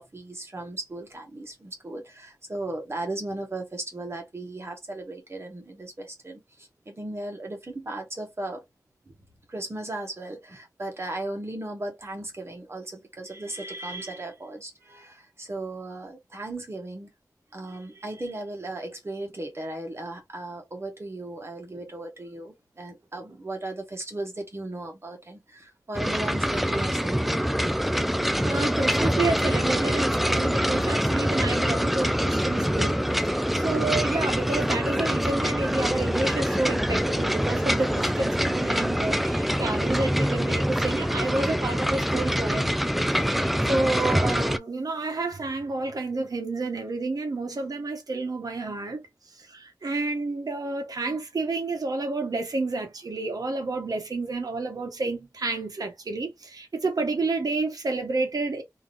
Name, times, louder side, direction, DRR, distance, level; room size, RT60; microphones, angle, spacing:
voice 1, 0.0-8.6 9.0-9.1 9.5-17.1 17.5-27.6, right 2 dB, 45° right, 1.5 m, -36 dB
sound 1, 25.9-44.6, equal, ahead, 0.3 m, -25 dB
voice 2, 28.4-33.0 33.2-42.7 43.3-49.0 49.5-58.6, right 3 dB, 85° right, 1.1 m, -30 dB
3.7 x 2.9 x 2.5 m
wide cardioid pair, 85°, 6 cm